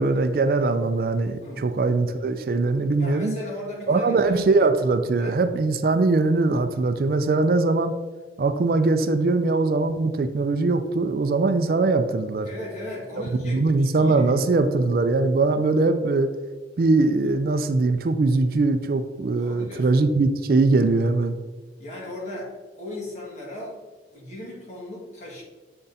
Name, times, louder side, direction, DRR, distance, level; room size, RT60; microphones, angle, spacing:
voice 1, 0.0-3.3 3.9-7.9 8.4-12.5 13.4-16.3 16.8-21.4, right 3 dB, 55° right, 9 dB, 0.4 m, -21 dB
voice 2, 3.0-4.6 5.2-5.4 12.4-14.4 19.4-20.0 21.8-23.8 24.1-25.4, left 1 dB, 40° left, -5 dB, 1.9 m, -37 dB
6.7 x 3.7 x 4.1 m, 1.3 s
head